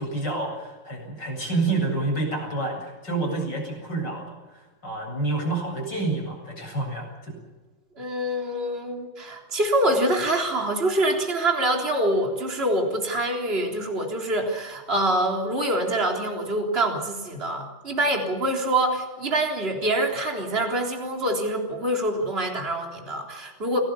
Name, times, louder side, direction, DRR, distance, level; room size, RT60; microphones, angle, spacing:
voice 1, 0.0-7.4, right 2 dB, 60° left, 1 dB, 8.7 m, -28 dB
voice 2, 8.0-23.8, right 1 dB, 30° right, 1 dB, 3.9 m, -25 dB
29.0 x 18.5 x 7.1 m, 1.2 s
omnidirectional pair, 2.1 m